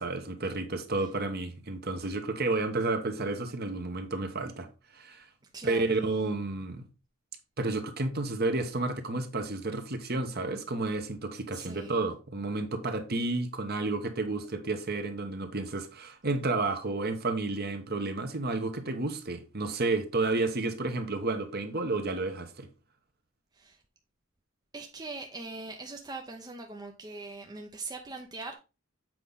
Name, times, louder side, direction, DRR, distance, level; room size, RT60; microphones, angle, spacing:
voice 1, 0.0-4.7 4.9-5.2 5.6-6.8 7.6-22.7, right 3 dB, 50° right, 1.2 m, -31 dB
voice 2, 5.5-6.0 11.5-11.9 23.6-23.8 24.7-28.5, right 3 dB, 20° right, 0.7 m, -41 dB
7.7 x 5.0 x 4.0 m
head